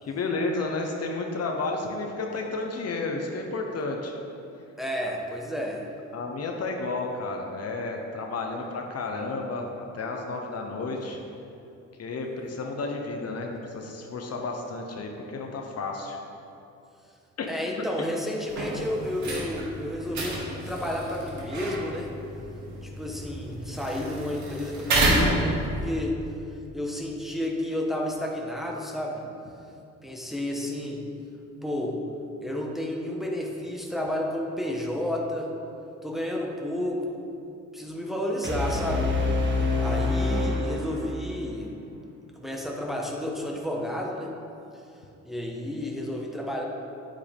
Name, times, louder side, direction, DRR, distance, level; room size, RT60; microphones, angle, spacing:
voice 1, 0.0-4.2 6.1-11.2 12.0-16.2 17.4-17.5 18.0-18.1, left 3 dB, 55° left, 2 dB, 1.1 m, -32 dB
voice 2, 4.8-5.9 17.5-20.4 20.7-22.1 22.8-26.2 26.7-29.3 30.0-31.0 31.6-32.0 32.4-35.5 36.0-37.2 37.7-39.1 39.8-41.7 42.3-44.3 45.2-46.6, left 1 dB, ahead, -1 dB, 1.3 m, -31 dB
sound 1, 18.5-26.0, right 1 dB, 70° right, 2.3 m, -30 dB
sound 2, 38.4-41.5, left 3 dB, 40° right, 1.9 m, -26 dB
9.8 x 8.5 x 3.6 m, 2.7 s
cardioid pair, 90°, 30 cm